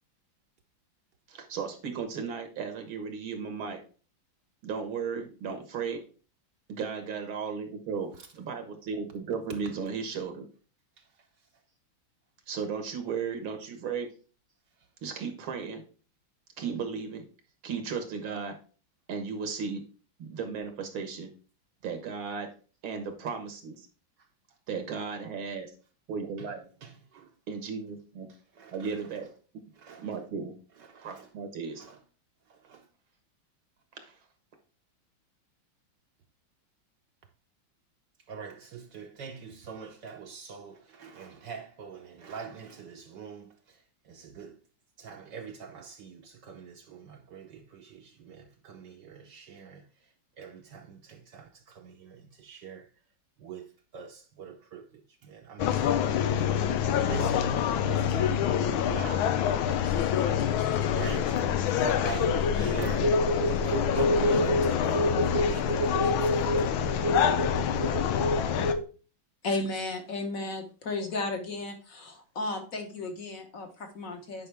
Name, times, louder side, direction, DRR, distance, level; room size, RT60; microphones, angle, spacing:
voice 1, 1.3-3.8 4.6-6.0 6.7-10.5 12.5-14.1 15.0-15.8 16.6-17.2 17.6-18.6 19.1-19.8 20.2-21.3 21.8-22.5 22.8-23.9 24.7-25.7 26.1-26.6 27.5-28.3 28.7-29.3 30.0-30.5 31.0-31.8 33.9-34.2, right 5 dB, 85° right, 2.3 m, -35 dB
voice 2, 26.8-27.3 28.3-29.0 29.7-30.2 30.8-31.3 31.8-32.0 32.5-32.9 38.3-44.6 45.0-50.1 50.4-52.9 53.4-59.4 59.7-66.9 67.2-68.0, right 6 dB, 65° right, 1.3 m, -44 dB
sound 1, 55.6-68.7, left 9 dB, 90° left, 1.5 m, -27 dB
sound 2, 62.2-68.8, right 1 dB, 15° right, 0.7 m, -29 dB
voice 3, 69.4-74.5, left 2 dB, 45° left, 1.5 m, -34 dB
9.5 x 5.3 x 3.5 m
omnidirectional pair, 2.2 m